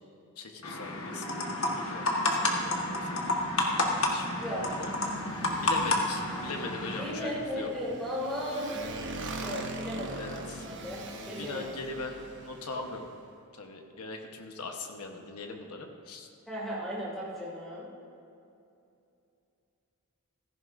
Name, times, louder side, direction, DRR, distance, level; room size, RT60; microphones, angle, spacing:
voice 1, 0.4-5.2 5.6-7.7 10.1-10.7 11.4-13.1 13.6-16.3, left 3 dB, 85° left, 2 dB, 1.2 m, -41 dB
sound 1, 0.6-7.1, left 2 dB, 65° left, 1.5 m, -30 dB
Motorcycle, 2.6-13.2, right 2 dB, 55° right, 1.0 m, -43 dB
voice 2, 6.9-8.9 9.4-11.7 16.5-17.9, equal, ahead, -8 dB, 3.1 m, -36 dB
16.0 x 14.5 x 2.6 m, 2.6 s
head